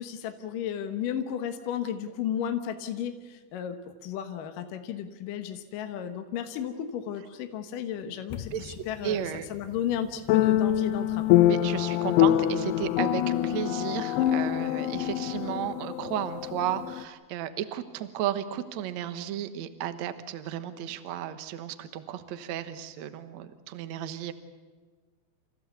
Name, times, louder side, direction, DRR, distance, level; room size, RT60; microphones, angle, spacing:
voice 1, 0.0-11.3, left 9 dB, 65° left, 7 dB, 2.6 m, -34 dB
sound 1, 8.3-8.7 10.3-17.0, left 13 dB, 85° left, 2.8 m, -25 dB
voice 2, 9.0-9.5 11.4-24.3, right 11 dB, 65° right, 10 dB, 1.9 m, -34 dB
28.5 x 15.5 x 8.3 m, 1.4 s
omnidirectional pair, 4.6 m